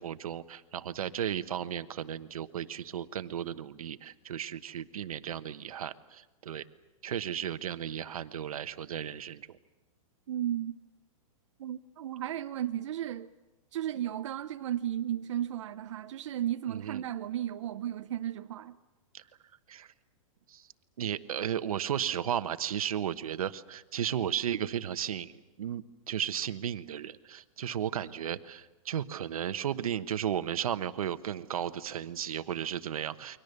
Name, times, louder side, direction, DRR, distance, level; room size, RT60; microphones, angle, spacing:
voice 1, 0.0-6.6 7.0-9.5 16.7-17.0 19.1-19.2 19.7-19.9 20.5-20.6 21.0-33.4, right 9 dB, 85° right, 1.2 m, -34 dB
voice 2, 10.3-10.7 11.6-13.3 13.7-18.8, right 11 dB, 60° right, 0.8 m, -34 dB
29.0 x 23.5 x 6.8 m
hypercardioid pair, 165°, 18 cm